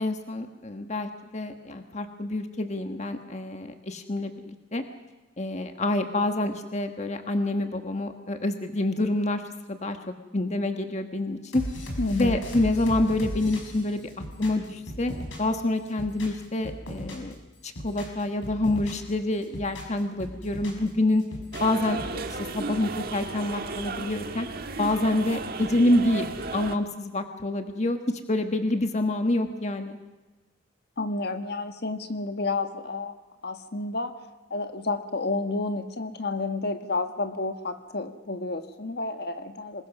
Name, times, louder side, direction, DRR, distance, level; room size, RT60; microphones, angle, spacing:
voice 1, 0.0-4.8 5.4-9.4 9.7-10.0 10.3-11.6 12.1-14.0 14.4-15.1 15.4-17.3 17.6-21.2 21.6-22.2 22.5-24.5 24.8-26.3 26.5-30.0, left 2 dB, 35° left, 6 dB, 1.4 m, -27 dB
sound 1, 11.5-15.6 15.9-17.3 17.6-19.1 19.4-20.9 21.2-22.2, equal, 75° left, 5.9 m, -37 dB
voice 2, 12.0-12.4 31.0-33.1 33.4-34.1 34.5-39.9, left 3 dB, 55° left, 7 dB, 1.5 m, -30 dB
sound 2, 21.5-26.8, right 3 dB, 50° right, 1.6 m, -34 dB
26.0 x 21.0 x 6.1 m, 1.1 s
head